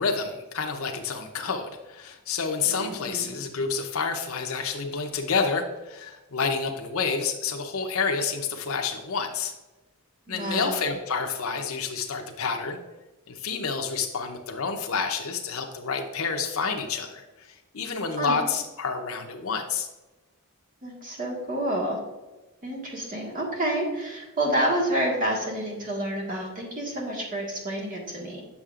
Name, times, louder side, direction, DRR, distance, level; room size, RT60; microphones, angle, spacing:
voice 1, 0.0-9.5 10.3-12.8 13.3-17.2 17.7-19.9, left 5 dB, 75° left, 4 dB, 0.7 m, -29 dB
voice 2, 2.6-3.3 10.3-10.8 18.2-18.4 20.8-22.0 22.6-28.4, right 1 dB, 40° right, -3 dB, 1.5 m, -29 dB
8.3 x 6.5 x 2.4 m, 1.1 s
head